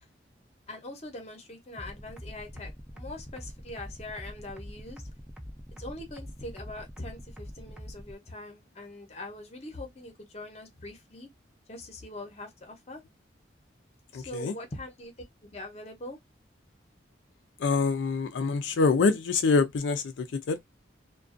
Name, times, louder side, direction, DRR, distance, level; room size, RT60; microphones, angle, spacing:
voice 1, 0.7-5.1 5.8-11.3 11.7-13.0 14.1-15.1 15.4-16.2, left 1 dB, 35° left, 0.7 m, -42 dB
sound 1, 1.8-8.1, equal, 5° right, 0.3 m, -44 dB
voice 2, 14.1-14.5 17.6-20.6, left 4 dB, 80° left, 0.4 m, -25 dB
2.4 x 2.2 x 2.4 m
head